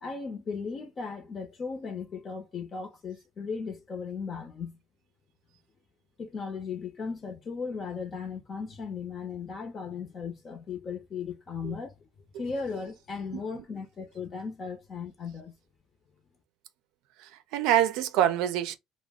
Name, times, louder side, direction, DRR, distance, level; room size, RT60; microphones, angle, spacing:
voice 1, 0.0-4.8 6.2-11.9 12.3-15.5, left 5 dB, 35° left, 0.7 m, -36 dB
voice 2, 17.2-18.8, right 11 dB, 85° right, 0.4 m, -26 dB
2.4 x 2.1 x 3.4 m
cardioid pair, 130°, 0 cm